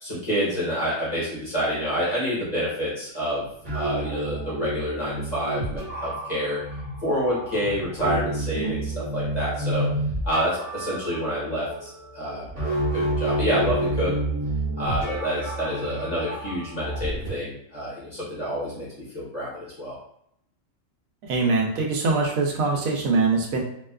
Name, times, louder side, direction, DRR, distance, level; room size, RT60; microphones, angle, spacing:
voice 1, 0.0-3.4 3.7-6.6 7.0-9.9 10.3-12.8 13.1-14.1 14.8-18.9 19.1-19.9, equal, 35° left, -7 dB, 1.0 m, -28 dB
sound 1, 3.6-17.3, right 1 dB, 30° right, 1.1 m, -29 dB
voice 2, 21.2-23.6, right 3 dB, 90° right, 1 dB, 1.0 m, -23 dB
2.6 x 2.2 x 2.2 m, 0.73 s
omnidirectional pair, 1.4 m